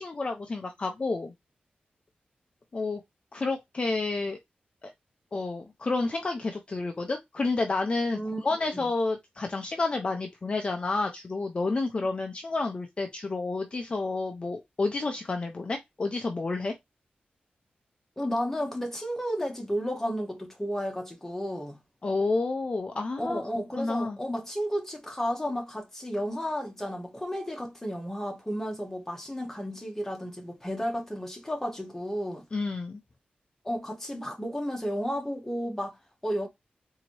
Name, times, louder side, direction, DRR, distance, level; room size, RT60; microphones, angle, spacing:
voice 1, 0.0-1.3 2.7-3.0 3.3-4.4 4.8-4.9 5.3-16.7 22.0-23.4 23.8-24.2 32.5-33.0, left 3 dB, 35° left, 0.5 m, -30 dB
voice 2, 8.1-8.5 8.7-8.8 18.2-21.8 23.2-32.4 33.6-36.5, equal, 10° left, 1.1 m, -32 dB
4.0 x 2.8 x 3.0 m
wide cardioid pair, 140°, 3 cm